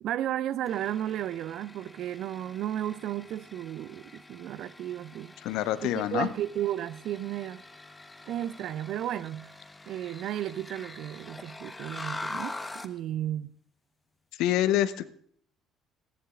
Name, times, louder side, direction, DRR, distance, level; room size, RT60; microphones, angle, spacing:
voice 1, 0.0-5.3 5.8-7.6 8.3-9.5 9.9-13.5, right 12 dB, 60° right, 0.4 m, -34 dB
sound 1, 0.7-13.0, left 2 dB, 15° left, 1.1 m, -44 dB
voice 2, 5.4-6.3 14.4-15.0, left 13 dB, 65° left, 0.6 m, -26 dB
19.5 x 15.0 x 2.5 m
figure-of-eight pair, 55°, 0 cm